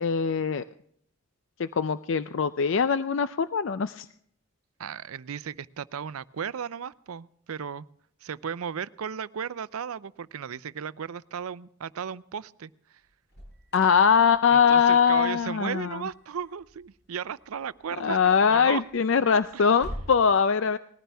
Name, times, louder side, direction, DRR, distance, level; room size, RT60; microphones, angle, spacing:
voice 1, 0.0-0.6 1.6-4.1 13.7-16.0 18.0-20.8, left 6 dB, 65° left, 13 dB, 0.5 m, -22 dB
voice 2, 4.8-7.9 8.2-12.7 14.5-18.8 19.5-19.8, right 7 dB, 90° right, 18 dB, 0.5 m, -35 dB
Alarm, 13.0-20.1, equal, 50° left, 6.2 m, -47 dB
20.0 x 14.5 x 3.5 m, 0.65 s
head